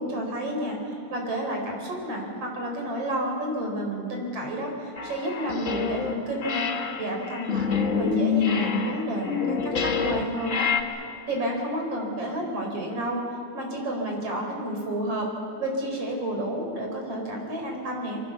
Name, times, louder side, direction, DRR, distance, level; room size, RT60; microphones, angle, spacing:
voice 1, 0.0-6.6 7.0-10.7 11.3-13.2 13.5-15.3 15.6-18.2, right 1 dB, 50° right, 1 dB, 5.6 m, -30 dB
sound 1, 5.0-6.1 6.4-10.8, left 6 dB, 50° left, 0.8 m, -27 dB
26.5 x 23.5 x 7.2 m, 2.4 s
omnidirectional pair, 3.4 m